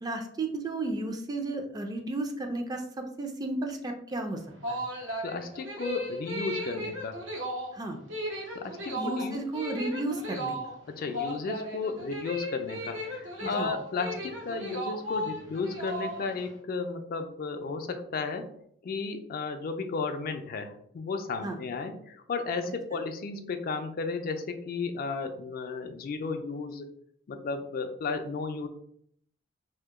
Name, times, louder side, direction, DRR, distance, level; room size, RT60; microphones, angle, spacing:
voice 1, 0.0-4.4 4.7-4.8 7.7-8.0 9.0-10.6 13.4-13.7 21.4-21.6, right 2 dB, 20° right, 4 dB, 0.4 m, -33 dB
sound 1, 4.4-16.5, equal, 80° right, 0.7 m, -36 dB
voice 2, 5.2-7.2 8.5-9.4 10.9-18.5 18.8-26.9 27.3-28.7, left 4 dB, 50° left, 7 dB, 0.3 m, -34 dB
2.7 x 2.1 x 3.5 m, 0.67 s
head